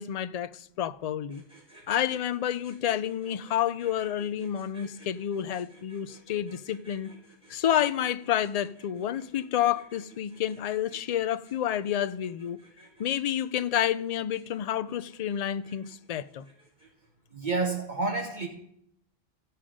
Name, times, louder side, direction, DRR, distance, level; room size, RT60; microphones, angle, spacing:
voice 1, 0.0-1.4 1.9-7.1 7.5-12.6 13.0-16.4, left 10 dB, 50° left, 0.5 m, -29 dB
sound 1, 1.3-17.1, right 1 dB, 5° right, 5.3 m, -56 dB
voice 2, 17.3-18.5, right 3 dB, 50° right, 1.2 m, -29 dB
16.0 x 5.6 x 5.0 m
omnidirectional pair, 1.0 m